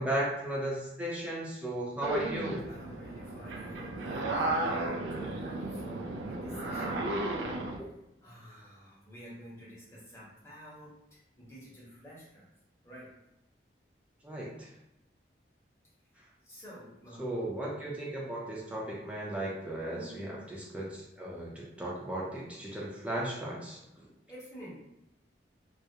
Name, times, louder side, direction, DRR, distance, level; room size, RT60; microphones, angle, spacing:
voice 1, 0.0-2.6 14.2-14.7 17.2-20.9 21.2-23.8, right 1 dB, 5° right, -5 dB, 0.5 m, -35 dB
sound 1, 2.0-7.8, right 2 dB, 85° right, 0.3 m, -34 dB
voice 2, 2.7-7.2 8.2-12.5 12.8-13.1 16.4-17.2 19.8-20.4 24.3-24.8, equal, 15° left, -8 dB, 0.8 m, -49 dB
2.3 x 2.0 x 2.7 m, 0.88 s
head